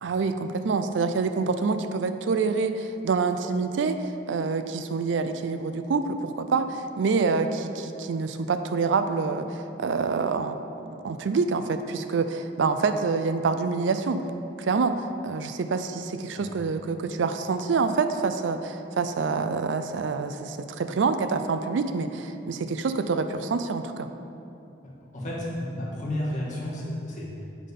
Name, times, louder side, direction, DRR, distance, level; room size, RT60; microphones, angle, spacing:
voice 1, 0.0-14.2 14.6-24.1, right 4 dB, 85° right, 9 dB, 0.4 m, -27 dB
voice 2, 25.1-27.3, left 1 dB, 40° left, -5 dB, 1.5 m, -31 dB
8.3 x 3.8 x 5.3 m, 2.7 s
head